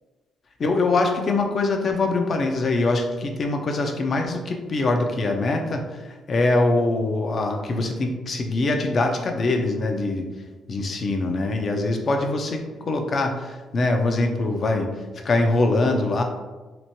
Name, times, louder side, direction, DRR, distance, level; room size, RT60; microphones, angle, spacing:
voice 1, 0.6-10.2 10.7-14.9 15.2-16.2, left 2 dB, 45° left, 4 dB, 0.4 m, -23 dB
2.9 x 2.2 x 2.7 m, 1.2 s
cardioid pair, 90°, 0 cm